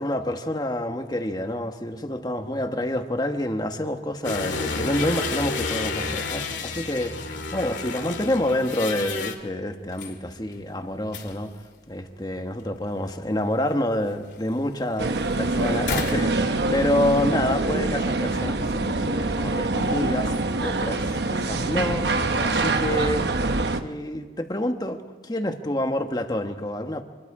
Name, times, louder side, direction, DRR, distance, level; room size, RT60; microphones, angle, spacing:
voice 1, 0.0-7.2 7.5-11.5 11.9-15.1 15.4-20.3 20.6-22.1 22.4-23.3 23.8-27.0, left 1 dB, 20° left, 6 dB, 1.3 m, -28 dB
sound 1, 4.2-9.4, left 4 dB, 80° left, 2.2 m, -30 dB
sound 2, 9.8-17.3, left 3 dB, 65° left, 2.7 m, -40 dB
sound 3, 15.0-23.8, right 2 dB, 65° right, 1.0 m, -25 dB
26.0 x 21.5 x 4.9 m, 1.5 s
head